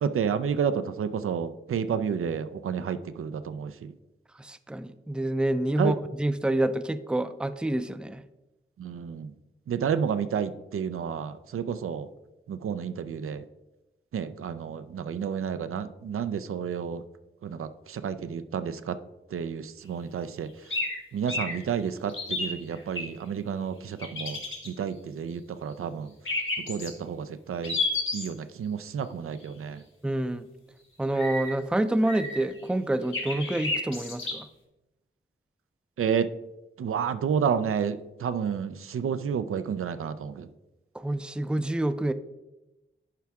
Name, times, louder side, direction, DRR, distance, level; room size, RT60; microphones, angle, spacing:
voice 1, 0.0-3.9 5.8-6.0 8.8-9.3 9.7-12.1 12.5-13.4 14.1-17.0 17.4-19.0 19.3-20.5 21.1-24.4 24.7-26.1 26.7-27.8 28.1-29.8 36.0-36.3 36.8-40.5, right 7 dB, 90° right, 11 dB, 0.4 m, -30 dB
voice 2, 4.4-8.2 30.0-30.5 31.0-34.5 40.9-42.1, right 1 dB, 5° right, 12 dB, 0.4 m, -27 dB
sound 1, 20.7-21.0 21.3-21.5 22.1-23.0 24.0-24.7 26.3-26.9 27.6-28.3 31.1-31.5 32.0-32.6 33.1-34.3, left 3 dB, 75° left, 2.5 m, -30 dB
10.5 x 4.8 x 3.5 m, 0.99 s
wide cardioid pair, 85°, 21 cm